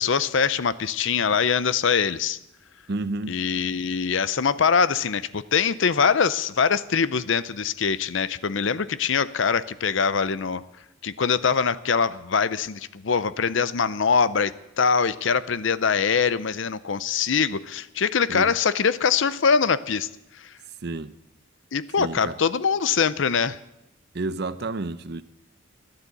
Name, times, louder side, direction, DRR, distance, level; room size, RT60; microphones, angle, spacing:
voice 1, 0.0-2.4 3.3-10.6 11.0-20.1 20.4-20.5 21.7-23.6, left 6 dB, 60° left, 0.6 m, -23 dB
voice 2, 2.9-3.4 18.3-18.5 20.8-21.1 22.0-22.4 24.1-25.2, right 2 dB, 50° right, 0.7 m, -30 dB
13.5 x 12.0 x 8.3 m
head